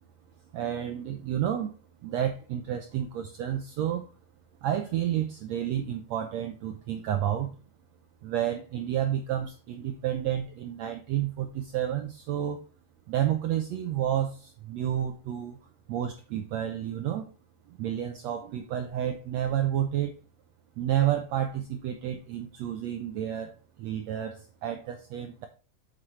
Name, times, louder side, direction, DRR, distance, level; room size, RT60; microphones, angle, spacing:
voice 1, 0.5-1.7 2.0-4.1 4.6-7.5 8.2-12.6 13.1-15.6 15.9-17.2 17.7-20.1 20.8-23.5 23.8-25.5, right 11 dB, 85° right, 5 dB, 1.5 m, -30 dB
7.7 x 7.5 x 3.2 m, 0.35 s
omnidirectional pair, 4.1 m